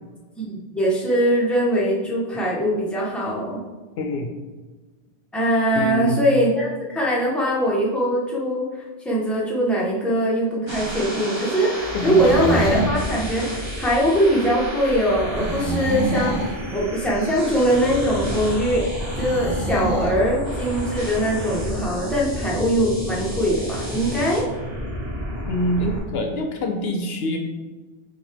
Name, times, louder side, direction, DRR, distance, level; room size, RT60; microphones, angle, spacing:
voice 1, 0.4-3.6 5.3-8.6 9.0-18.9 19.2-24.4, equal, ahead, -5 dB, 1.0 m, -22 dB
voice 2, 4.0-4.3 5.7-6.3 11.9-12.5 15.4-15.5 25.5-27.4, left 1 dB, 70° left, 4 dB, 0.8 m, -25 dB
kugelblitz ambience, 10.7-26.0, equal, 25° right, 1.7 m, -30 dB
sound 1, 11.7-13.0 15.3-16.6 19.1-20.2, right 2 dB, 60° right, 2.1 m, -27 dB
6.2 x 4.5 x 3.4 m, 1.3 s
omnidirectional pair, 1.1 m